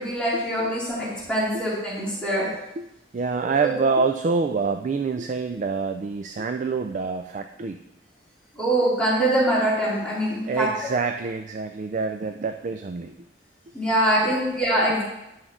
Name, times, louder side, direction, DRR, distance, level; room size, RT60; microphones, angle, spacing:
voice 1, 0.0-2.5 3.6-3.7 8.5-10.9 13.7-15.0, right 1 dB, 5° left, -9 dB, 3.2 m, -23 dB
voice 2, 3.1-7.8 10.5-13.1 14.3-14.4, right 4 dB, 40° right, 7 dB, 0.4 m, -26 dB
11.0 x 6.1 x 3.8 m, 0.91 s
head